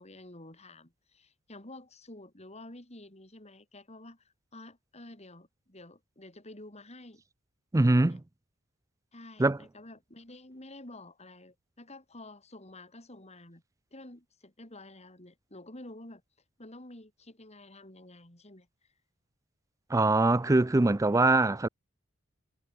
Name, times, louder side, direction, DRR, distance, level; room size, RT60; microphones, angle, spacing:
voice 1, 0.0-7.2 7.9-8.2 9.1-13.6 13.9-16.2 16.6-18.7, left 1 dB, 30° left, 4.4 m, -50 dB
voice 2, 7.7-8.2 9.4-9.6 19.9-21.7, right 2 dB, 15° right, 0.4 m, -23 dB
head